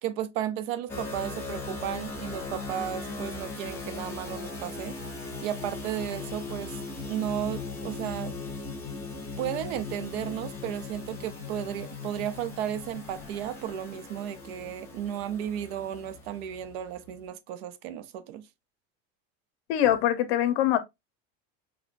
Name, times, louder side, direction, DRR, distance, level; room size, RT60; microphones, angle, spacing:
voice 1, 0.0-5.0 5.4-6.8 7.0-8.4 9.4-18.5, right 10 dB, 65° right, 0.6 m, -34 dB
sound 1, 0.9-17.2, left 3 dB, 10° left, 0.8 m, -39 dB
voice 2, 19.7-20.8, left 11 dB, 70° left, 0.8 m, -23 dB
6.1 x 2.2 x 2.5 m
cardioid pair, 180°, 32 cm